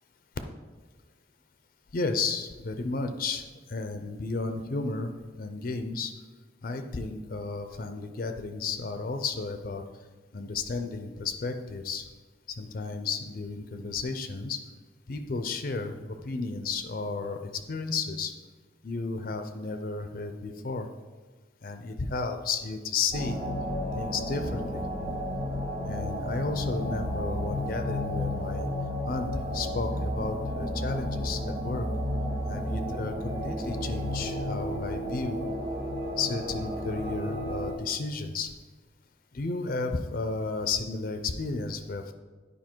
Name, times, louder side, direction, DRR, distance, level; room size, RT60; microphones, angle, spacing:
voice 1, 1.9-5.1 5.4-6.1 6.6-9.8 10.3-12.0 12.6-14.6 15.1-18.3 18.8-20.9 21.6-23.4 23.9-24.8 25.9-28.6 29.0-31.9 32.5-35.4 36.2-38.5 39.3-42.1, left 4 dB, 50° left, 7 dB, 0.5 m, -33 dB
sound 1, 23.1-37.7, equal, 55° right, 1.8 m, -32 dB
9.8 x 5.0 x 4.5 m, 1.3 s
head